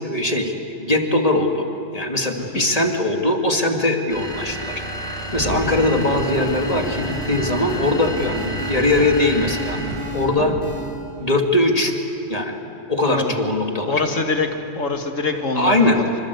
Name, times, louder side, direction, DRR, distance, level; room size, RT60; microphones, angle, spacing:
voice 1, 0.0-1.7 1.9-4.8 5.3-9.8 10.1-10.5 11.2-11.9 12.3-12.6 12.9-13.9 15.3-16.0, left 2 dB, 30° left, 2 dB, 2.3 m, -21 dB
sound 1, 4.1-10.3, right 1 dB, 5° left, 5.7 m, -31 dB
sound 2, 5.3-11.1, left 1 dB, 45° right, 6.5 m, -30 dB
voice 2, 13.9-14.5 14.8-16.0, left 3 dB, 85° left, 4 dB, 2.5 m, -24 dB
26.5 x 26.0 x 8.3 m, 2.8 s
omnidirectional pair, 1.3 m